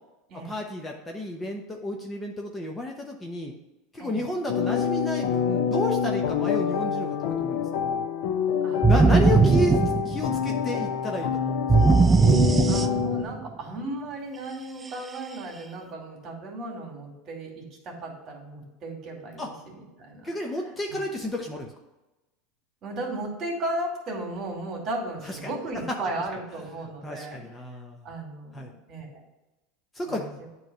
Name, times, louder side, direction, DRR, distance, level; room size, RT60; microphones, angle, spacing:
voice 1, 0.4-3.5 3.9-8.0 8.8-11.7 19.4-19.5 20.2-21.7 25.2-25.5 26.7-28.1 28.5-28.7 29.9-30.2, left 1 dB, 15° left, 1 dB, 0.8 m, -31 dB
sound 1, 4.5-13.2, left 7 dB, 70° left, 0.6 m, -27 dB
voice 2, 8.6-9.0 12.6-20.3 20.9-21.0 22.8-27.4 28.0-29.1 30.1-30.5, right 2 dB, 35° right, -1 dB, 2.5 m, -35 dB
sound 2, 8.8-10.6 11.7-13.4, right 4 dB, 15° right, 0.3 m, -19 dB
9.0 x 3.1 x 6.1 m, 1.0 s
supercardioid pair, 130°, 0 cm